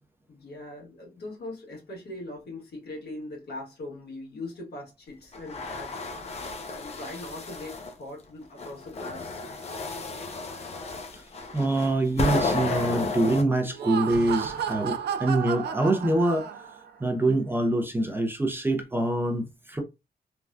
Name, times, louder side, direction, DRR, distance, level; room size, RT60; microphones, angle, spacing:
voice 1, 0.3-6.0 6.7-9.4 15.2-15.3, left 2 dB, 80° left, 1.5 m, -40 dB
sound 1, 5.3-7.9 8.6-13.4, left 3 dB, 40° left, 0.6 m, -32 dB
voice 2, 11.5-16.5 17.0-19.8, right 2 dB, 15° right, 0.5 m, -25 dB
Laughter, 13.6-16.9, right 8 dB, 85° right, 0.4 m, -32 dB
3.4 x 2.2 x 2.5 m
wide cardioid pair, 175°, 17 cm